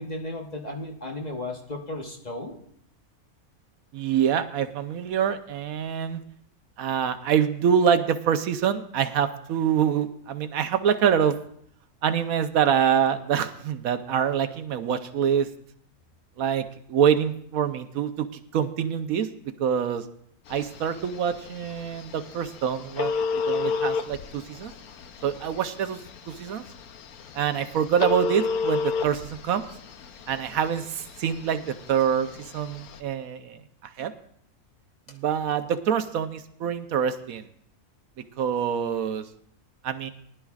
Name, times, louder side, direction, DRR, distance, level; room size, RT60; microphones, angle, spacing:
voice 1, 0.0-2.6, left 2 dB, 30° left, 1 dB, 1.1 m, -34 dB
voice 2, 3.9-6.2 6.8-11.4 12.0-15.5 16.4-19.3 19.6-20.0 20.5-23.1 23.5-24.7 25.2-26.0 26.3-26.6 27.3-29.6 30.3-31.6 31.9-34.1 35.1-37.4 38.4-39.2 39.8-40.1, right 8 dB, 75° right, 10 dB, 1.1 m, -25 dB
Telephone, 20.5-33.0, left 5 dB, 80° left, 1.2 m, -32 dB
19.0 x 11.0 x 2.4 m, 0.66 s
omnidirectional pair, 1.5 m